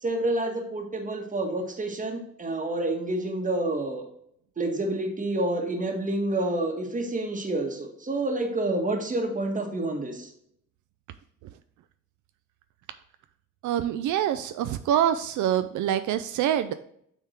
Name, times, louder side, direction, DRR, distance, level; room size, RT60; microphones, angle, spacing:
voice 1, 0.0-4.0 4.6-10.3, right 2 dB, 25° right, 3 dB, 1.7 m, -28 dB
voice 2, 13.6-16.7, right 10 dB, 80° right, 10 dB, 0.5 m, -25 dB
8.1 x 3.6 x 4.3 m, 0.70 s
cardioid pair, 90°, 30 cm